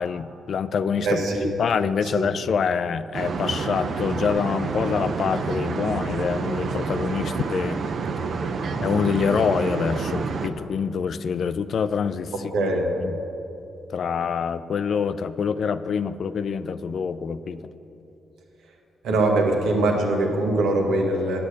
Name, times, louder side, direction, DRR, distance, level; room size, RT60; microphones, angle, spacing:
voice 1, 0.0-1.2 1.6-7.8 8.8-12.7 13.0-13.2 13.9-17.6, left 6 dB, 55° left, 13 dB, 0.4 m, -26 dB
voice 2, 1.0-1.5 2.0-2.3 12.5-12.9 19.0-21.4, right 2 dB, 85° right, 1 dB, 1.5 m, -22 dB
sound 1, 3.1-10.5, right 4 dB, 55° right, 0.7 m, -28 dB
8.6 x 8.4 x 8.1 m, 2.9 s
cardioid pair, 120°, 0 cm